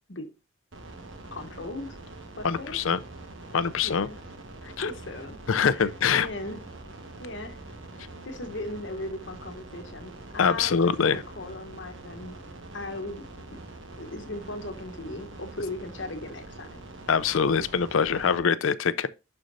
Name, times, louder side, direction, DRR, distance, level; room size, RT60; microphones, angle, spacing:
sound 1, 0.7-18.4, right 2 dB, 80° right, 1.4 m, -44 dB
voice 1, 1.3-2.0 2.4-2.8 3.8-4.2 4.6-6.6 7.2-7.6 8.2-12.4 12.7-13.2 13.5-13.6 14.0-16.8, left 2 dB, 70° left, 1.2 m, -38 dB
voice 2, 2.4-3.0 3.5-4.1 4.8-4.9 5.5-6.3 10.4-11.2 17.1-19.1, left 6 dB, 90° left, 0.5 m, -24 dB
11.5 x 4.4 x 2.6 m
head